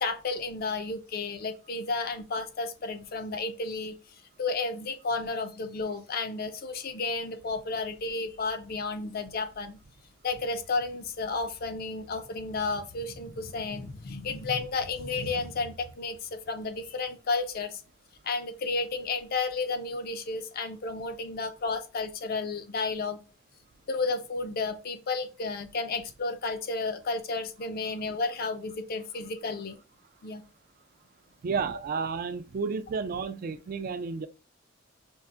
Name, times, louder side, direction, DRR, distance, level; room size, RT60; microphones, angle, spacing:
voice 1, 0.0-4.0 4.4-9.8 10.2-17.8 18.2-23.2 23.9-29.8 30.2-30.4, left 3 dB, 50° left, 0.5 m, -32 dB
voice 2, 31.4-34.3, right 5 dB, 45° right, 0.3 m, -31 dB
5.3 x 2.5 x 2.4 m
head